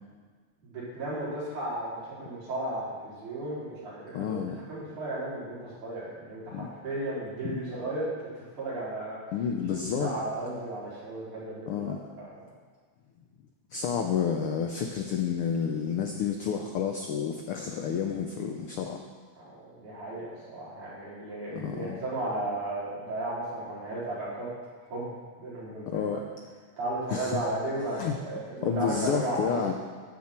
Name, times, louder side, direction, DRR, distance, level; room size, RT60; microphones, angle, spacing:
voice 1, 0.6-4.4 4.7-9.2 9.7-12.3 19.4-24.5 24.9-25.1 25.4-26.0 26.8-29.7, right 1 dB, 85° right, -9 dB, 5.7 m, -34 dB
voice 2, 4.1-4.6 6.5-6.7 7.4-7.6 9.3-10.1 11.7-12.0 13.7-19.0 21.5-22.0 25.9-26.2 27.1-27.4 27.9-28.1 28.6-29.7, left 7 dB, 90° left, 4 dB, 1.2 m, -30 dB
13.0 x 9.7 x 4.4 m, 1.5 s
omnidirectional pair, 3.4 m